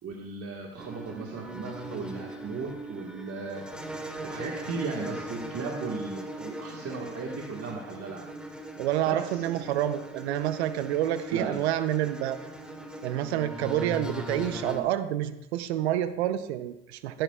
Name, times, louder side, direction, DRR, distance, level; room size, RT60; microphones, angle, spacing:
voice 1, 0.0-3.6 4.2-8.3 9.1-9.4 11.3-11.7, right 4 dB, 50° right, 0 dB, 1.6 m, -36 dB
sound 1, 0.8-14.8, right 1 dB, 5° right, 1.8 m, -39 dB
voice 2, 8.8-12.4 13.0-17.2, right 12 dB, 85° right, 13 dB, 0.7 m, -28 dB
14.5 x 11.0 x 2.3 m, 0.89 s
hypercardioid pair, 65°, 32 cm